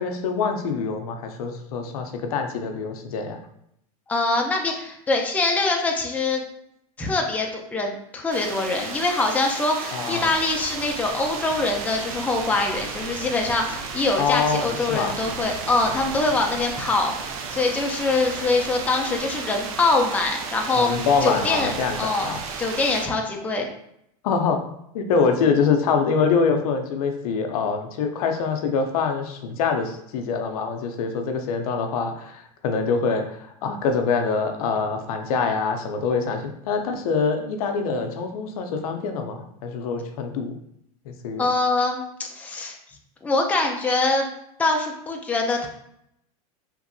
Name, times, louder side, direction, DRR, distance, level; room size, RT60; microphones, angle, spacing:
voice 1, 0.0-3.4 9.9-10.3 14.2-15.1 20.7-22.4 24.2-24.6 24.9-40.5 41.1-41.4, left 5 dB, 75° left, 5 dB, 0.5 m, -25 dB
voice 2, 4.1-6.4 7.0-21.7 22.0-22.3 22.6-23.7 41.4-42.8 43.2-44.3 44.6-45.7, left 3 dB, 10° left, 1 dB, 0.4 m, -24 dB
sound 1, 8.3-23.1, right 5 dB, 65° right, 0.5 m, -34 dB
2.9 x 2.6 x 2.5 m, 0.75 s
hypercardioid pair, 110°, 19 cm